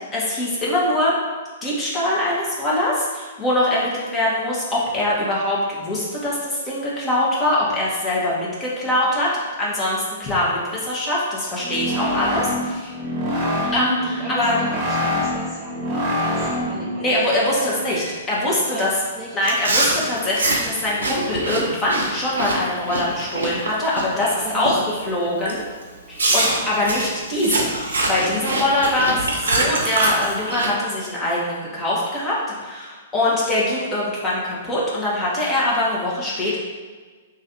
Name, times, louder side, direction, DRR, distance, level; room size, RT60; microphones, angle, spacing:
voice 1, 0.1-1.1 1.6-9.3 9.6-12.9 13.7-14.6 17.0-18.9 19.3-24.7 25.0-25.6 26.1-29.2 29.5-36.6, left 1 dB, 20° left, -6 dB, 1.3 m, -23 dB
sound 1, 11.6-16.9, left 1 dB, 35° right, 1.0 m, -25 dB
voice 2, 13.2-13.7 14.1-17.7 18.7-19.4 24.1-25.2 26.3-26.7 28.8-29.0 33.1-33.3, right 1 dB, 15° right, -6 dB, 0.7 m, -36 dB
sound 2, 16.0-20.6 20.9-21.2, right 1 dB, 85° left, 0.8 m, -38 dB
Chewing mastication, 19.4-24.3 24.7-25.0 25.5-25.6 26.2-30.7, right 2 dB, 75° right, 0.7 m, -24 dB
3.1 x 2.6 x 4.3 m, 1.4 s
figure-of-eight pair, 115°, 0 cm